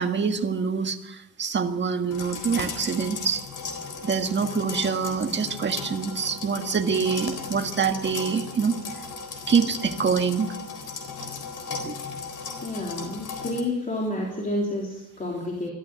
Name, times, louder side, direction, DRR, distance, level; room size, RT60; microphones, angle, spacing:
voice 1, 0.0-3.4 4.0-8.7 9.5-10.5 11.8-11.9, right 6 dB, 30° right, 5 dB, 1.7 m, -25 dB
sound 1, 2.1-13.6, left 5 dB, 60° left, 4.0 m, -36 dB
voice 2, 12.6-15.7, left 1 dB, 25° left, -2 dB, 3.6 m, -29 dB
22.5 x 14.0 x 9.2 m, 0.90 s
cardioid pair, 165°, 34 cm